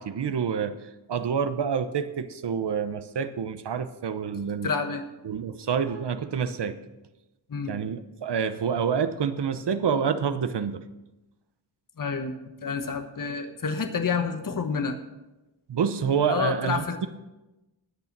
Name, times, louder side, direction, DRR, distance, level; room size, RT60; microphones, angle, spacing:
voice 1, 0.0-4.7 5.2-6.8 7.7-10.8 15.7-17.1, right 7 dB, 65° right, 11 dB, 0.9 m, -28 dB
voice 2, 4.6-5.0 7.5-7.7 12.0-12.4 12.6-15.0 16.2-17.1, left 5 dB, 45° left, 6 dB, 1.2 m, -29 dB
19.5 x 6.8 x 6.0 m, 1.0 s
wide cardioid pair, 135°, 44 cm